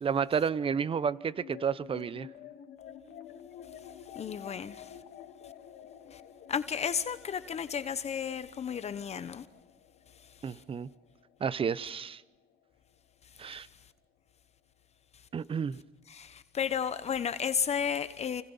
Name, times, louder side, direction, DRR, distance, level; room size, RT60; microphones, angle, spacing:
voice 1, 0.0-2.3 10.4-10.9 11.4-12.2 13.4-13.7 15.3-15.8, right 7 dB, 30° right, 0.8 m, -31 dB
sound 1, 0.5-13.1, left 9 dB, 75° left, 2.3 m, -51 dB
voice 2, 4.1-4.9 6.1-6.2 6.5-9.4 16.1-18.4, left 7 dB, 40° left, 1.0 m, -33 dB
29.0 x 27.0 x 5.6 m
cardioid pair, 110°, 17 cm